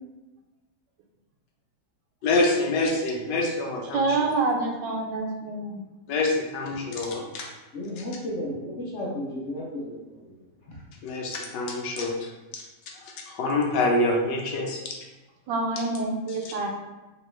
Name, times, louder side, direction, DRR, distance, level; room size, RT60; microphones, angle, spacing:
voice 1, 2.2-4.2 6.1-7.5 11.0-12.3 12.5-12.6 12.9-14.9 16.4-16.5, left 2 dB, 80° left, 0 dB, 1.3 m, -26 dB
voice 2, 3.9-5.8 15.5-16.9, right 3 dB, 90° right, 1 dB, 1.3 m, -27 dB
voice 3, 7.7-10.3 10.7-10.8, left 1 dB, 55° left, -4 dB, 0.9 m, -33 dB
3.6 x 3.0 x 3.1 m, 1.1 s
omnidirectional pair, 1.9 m